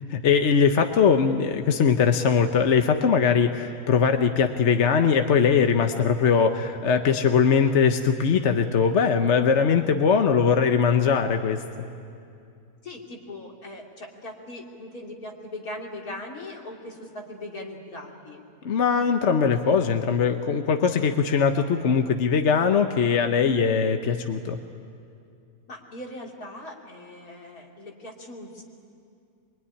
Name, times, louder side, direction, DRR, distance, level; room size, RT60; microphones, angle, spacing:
voice 1, 0.1-11.6 18.6-24.6, left 6 dB, 55° left, 6 dB, 1.2 m, -21 dB
voice 2, 12.8-18.4 25.7-28.6, left 1 dB, 75° left, -1 dB, 3.4 m, -40 dB
24.0 x 23.5 x 9.9 m, 2.4 s
omnidirectional pair, 1.6 m